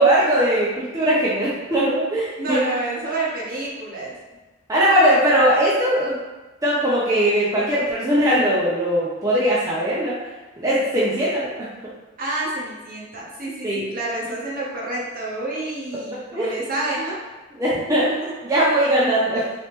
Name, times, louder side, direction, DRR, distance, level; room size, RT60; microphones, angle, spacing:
voice 1, 0.0-2.6 4.7-6.1 6.6-10.1 10.6-11.5 13.6-13.8 16.3-16.5 17.6-18.1 18.5-19.4, right 1 dB, 15° right, -8 dB, 0.5 m, -19 dB
voice 2, 2.4-4.1 12.2-17.2 17.7-17.8 18.0-18.3, right 2 dB, 45° right, -4 dB, 0.8 m, -28 dB
3.3 x 3.0 x 2.9 m, 1.1 s
head